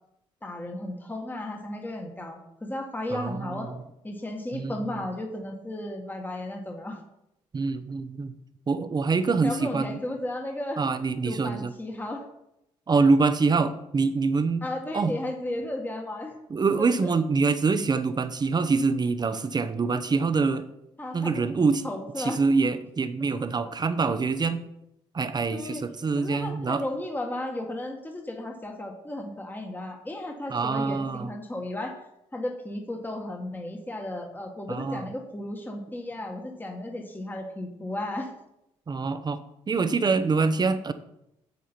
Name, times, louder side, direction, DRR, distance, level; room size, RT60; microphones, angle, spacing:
voice 1, 0.4-3.7 4.0-7.0 9.4-10.8 11.2-12.2 13.0-13.1 14.6-16.4 16.8-16.9 21.0-21.4 21.8-22.4 25.5-25.8 26.2-31.9 32.3-38.3, left 1 dB, 15° left, 2 dB, 1.7 m, -34 dB
voice 2, 3.1-3.8 4.5-4.8 7.5-8.3 8.7-10.0 10.8-11.7 12.9-14.6 14.9-15.1 16.5-20.7 21.1-21.8 22.2-24.6 25.1-26.8 30.5-31.3 34.7-35.1 38.9-39.4 39.7-40.9, right 4 dB, 35° right, 11 dB, 0.9 m, -25 dB
8.4 x 7.4 x 4.5 m, 0.83 s
supercardioid pair, 65°, 13 cm